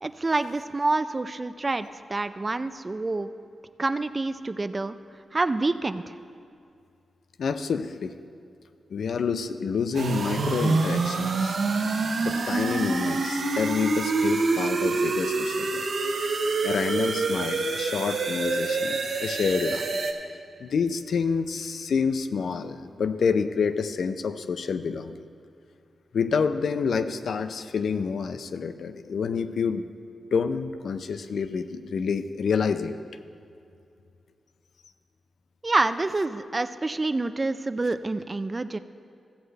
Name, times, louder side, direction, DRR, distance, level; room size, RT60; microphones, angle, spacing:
voice 1, 0.0-3.3 3.8-5.0 5.3-6.1 35.6-38.8, right 2 dB, 30° right, 11 dB, 0.3 m, -27 dB
voice 2, 7.4-8.2 8.9-11.6 12.2-15.8 16.6-19.9 20.6-25.2 26.1-29.9 30.3-33.0, left 5 dB, 75° left, 10 dB, 0.4 m, -28 dB
sound 1, 9.9-20.1, right 3 dB, 80° right, 0.8 m, -26 dB
15.0 x 7.8 x 3.3 m, 2.4 s
cardioid pair, 90°, 0 cm